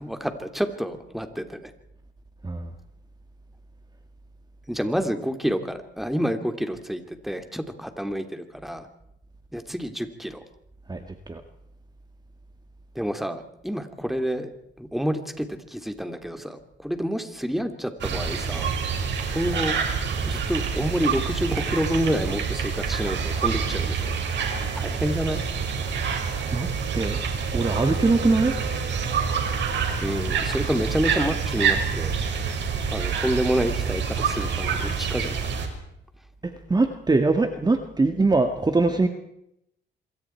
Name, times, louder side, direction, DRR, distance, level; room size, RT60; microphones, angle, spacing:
voice 1, 0.0-1.7 4.7-8.9 9.5-10.4 12.9-14.5 14.8-18.7 19.3-19.8 20.3-24.2 24.7-25.4 30.0-32.1 32.9-35.5, equal, ahead, 7 dB, 3.0 m, -28 dB
voice 2, 10.9-11.4 26.5-27.2 27.5-28.5 36.4-39.1, right 3 dB, 20° right, 6 dB, 2.0 m, -22 dB
sound 1, 18.0-35.7, right 6 dB, 65° right, 5.6 m, -27 dB
27.0 x 23.0 x 4.7 m, 0.78 s
cardioid pair, 90°, 20 cm